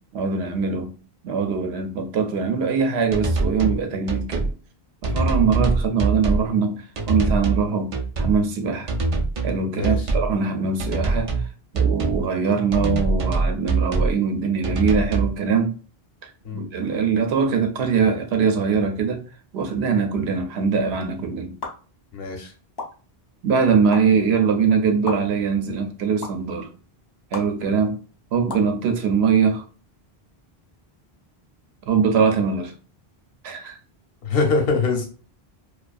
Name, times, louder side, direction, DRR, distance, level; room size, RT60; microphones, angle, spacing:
voice 1, 0.1-0.9 1.2-4.5 5.0-9.0 9.4-11.3 11.7-15.8 16.2-19.2 19.5-21.5 23.4-26.7 27.3-28.0 28.3-29.6 31.9-32.7 33.4-33.8, right 5 dB, 85° right, 0.8 m, -22 dB
sound 1, 3.1-3.8 4.1-4.5 5.0-6.5 7.0-7.6 7.9-8.4 8.9-9.6 9.8-10.3 10.8-11.5 11.7-12.2 12.7-14.1 14.6-15.3, right 3 dB, 55° right, 0.4 m, -23 dB
sound 2, 21.6-21.7 22.8-22.9 23.9-24.0 25.1-25.2 26.2-26.3 27.3-27.4 28.5-28.7, left 3 dB, 30° left, 0.4 m, -30 dB
voice 2, 22.1-22.5 34.2-35.0, left 4 dB, 70° left, 0.9 m, -23 dB
2.5 x 2.2 x 2.3 m
omnidirectional pair, 1.0 m